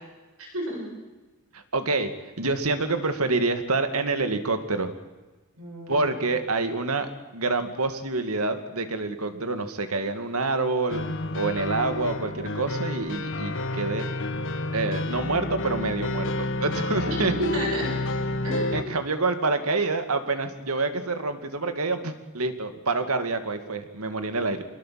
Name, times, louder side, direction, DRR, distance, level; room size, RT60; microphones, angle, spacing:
voice 1, 0.4-0.9 5.6-6.1 17.0-17.9 18.4-18.9, equal, 70° right, 1 dB, 7.7 m, -31 dB
voice 2, 1.5-2.1 2.4-4.9 5.9-14.1 14.7-17.3 18.7-24.6, right 3 dB, 90° right, 8 dB, 2.3 m, -27 dB
sound 1, 10.9-18.8, left 2 dB, 60° left, 1.5 m, -30 dB
26.5 x 21.0 x 7.7 m, 1.2 s
head